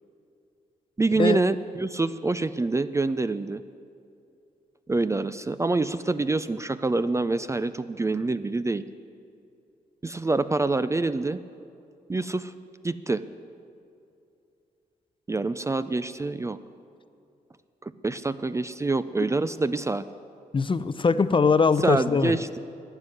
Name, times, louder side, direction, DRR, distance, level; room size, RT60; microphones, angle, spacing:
voice 1, 1.0-3.6 4.9-8.8 10.0-11.4 12.1-12.5 12.8-13.2 15.3-16.6 17.8-20.0 21.8-22.6, right 3 dB, 20° right, 13 dB, 0.4 m, -26 dB
voice 2, 20.5-22.4, left 5 dB, 35° left, 14 dB, 0.6 m, -21 dB
12.0 x 8.0 x 9.9 m, 2.5 s
cardioid pair, 70°, 16 cm